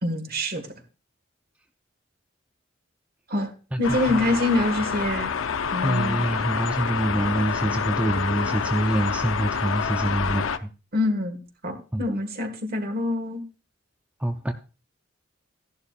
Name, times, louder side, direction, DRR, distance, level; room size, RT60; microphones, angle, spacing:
voice 1, 0.0-0.7 3.3-3.5 3.8-5.3 5.7-6.2 10.9-13.4, left 1 dB, 50° right, 7 dB, 1.6 m, -26 dB
sound 1, 3.8-10.6, left 6 dB, 80° left, 0.6 m, -27 dB
voice 2, 5.8-10.7 11.9-12.1 14.2-14.5, right 1 dB, 5° right, 5 dB, 0.5 m, -25 dB
14.5 x 11.0 x 2.4 m, 0.33 s
head